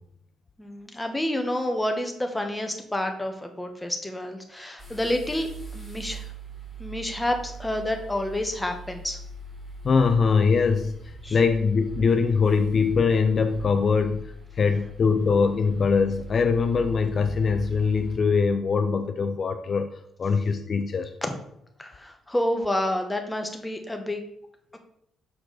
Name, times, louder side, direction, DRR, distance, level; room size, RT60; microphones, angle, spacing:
voice 1, 0.6-6.3 6.8-9.2 11.2-11.4 21.2-21.3 21.8-24.2 24.7-24.8, left 1 dB, 10° left, 4 dB, 1.0 m, -29 dB
sound 1, 4.8-18.2, right 3 dB, 20° right, 2.2 m, -41 dB
voice 2, 9.8-10.9 11.3-19.9 20.2-21.1, left 5 dB, 45° left, 6 dB, 0.4 m, -22 dB
6.4 x 4.6 x 3.9 m, 0.73 s
cardioid pair, 90°, 0 cm